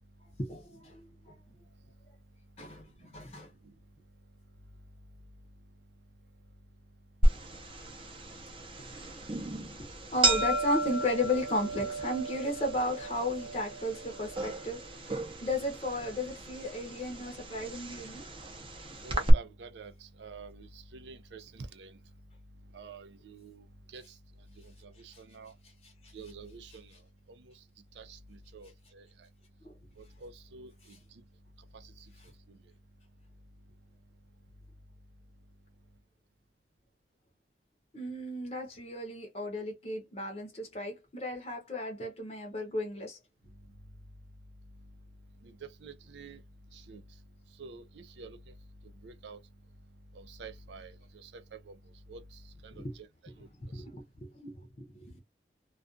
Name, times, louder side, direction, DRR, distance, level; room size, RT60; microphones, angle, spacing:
voice 1, 0.4-1.3 2.6-3.5 10.1-18.3 26.0-26.1 29.6-29.7 37.9-43.2 52.7-52.9 53.6-55.2, left 1 dB, 35° left, 0.6 m, -35 dB
sound 1, 7.2-19.3, right 1 dB, 30° right, 0.5 m, -33 dB
voice 2, 19.0-22.0 22.7-24.1 24.6-25.5 26.1-26.9 27.3-27.6 28.0-29.3 30.0-31.0 31.7-32.1 32.5-32.6 45.4-46.4 46.7-47.0 47.6-48.4 49.0-49.4 50.1-51.8 52.1-53.1 53.4-53.5 53.7-53.8, right 4 dB, 85° right, 0.4 m, -48 dB
2.3 x 2.2 x 2.4 m
head